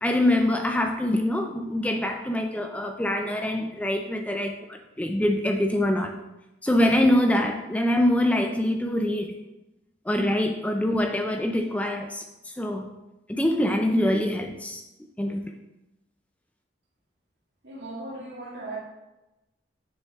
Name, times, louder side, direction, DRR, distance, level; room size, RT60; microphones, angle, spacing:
voice 1, 0.0-6.1 6.6-9.3 10.1-12.9 13.3-14.8 15.2-15.4, left 1 dB, 10° left, 4 dB, 0.4 m, -24 dB
voice 2, 17.6-18.8, right 2 dB, 70° right, -4 dB, 2.2 m, -37 dB
7.1 x 6.7 x 3.5 m, 0.99 s
head